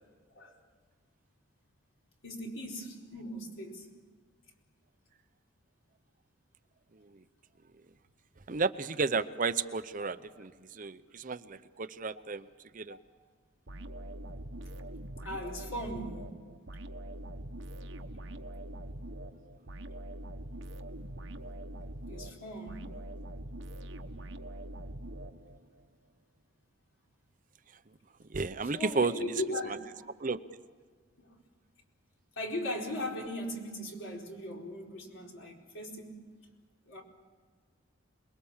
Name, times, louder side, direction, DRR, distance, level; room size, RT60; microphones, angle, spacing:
voice 1, 2.2-3.9 10.0-10.1 10.3-10.4 12.9-13.0 15.2-16.3 22.0-23.0 28.7-30.1 31.2-31.3 32.4-36.2 36.9-37.0, left 1 dB, 75° left, -1 dB, 4.6 m, -39 dB
voice 2, 6.9-7.2 8.5-12.5 12.7-13.0 28.3-29.1 30.2-30.4, right 4 dB, 40° right, 12 dB, 0.7 m, -32 dB
sound 1, 13.7-25.9, right 1 dB, 65° right, 1.2 m, -43 dB
27.5 x 21.5 x 7.3 m, 1.5 s
head